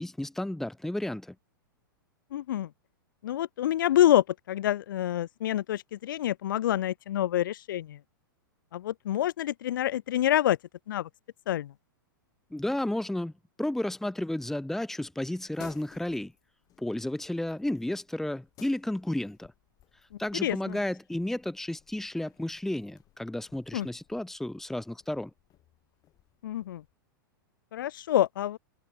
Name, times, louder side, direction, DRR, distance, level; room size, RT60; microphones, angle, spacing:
voice 1, 0.0-1.3 12.5-13.3 13.6-16.3 16.8-19.5 20.2-25.3, left 1 dB, 5° left, 1.9 m, -32 dB
voice 2, 2.3-2.7 3.2-8.0 8.7-10.6 10.9-11.1 11.5-11.7 20.4-20.8 23.7-23.9 26.4-26.8 27.7-28.6, left 12 dB, 65° left, 0.4 m, -27 dB
sound 1, 15.0-26.9, left 14 dB, 35° left, 6.3 m, -58 dB
figure-of-eight pair, 105°, 12 cm